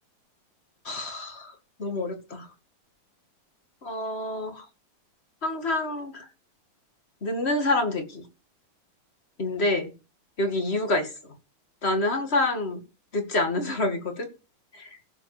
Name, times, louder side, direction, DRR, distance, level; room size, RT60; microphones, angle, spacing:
voice 1, 0.8-1.5 1.8-2.5 3.8-4.7 5.4-6.3 7.2-8.2 9.4-9.9 10.4-11.1 11.8-12.8 13.1-14.3 14.7-14.9, left 2 dB, 30° left, 7 dB, 2.3 m, -27 dB
15.5 x 7.2 x 5.0 m, 0.31 s
omnidirectional pair, 2.4 m